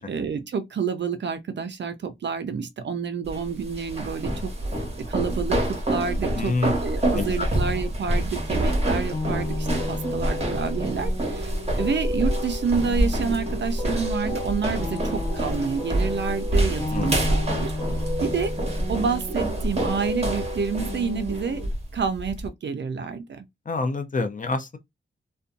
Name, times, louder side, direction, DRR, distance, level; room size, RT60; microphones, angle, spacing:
voice 1, 0.0-4.5 5.0-6.6 6.8-17.7 18.2-18.5 18.9-21.6 21.9-23.4, right 5 dB, 60° right, 0.4 m, -29 dB
sound 1, 3.2-22.5, right 1 dB, 30° right, 0.9 m, -27 dB
voice 2, 6.3-6.8 7.1-7.5 16.9-17.1 23.7-24.8, left 3 dB, 40° left, 0.5 m, -27 dB
sound 2, 9.1-21.7, left 1 dB, 10° left, 0.8 m, -33 dB
2.6 x 2.2 x 2.5 m
cardioid pair, 65°, 21 cm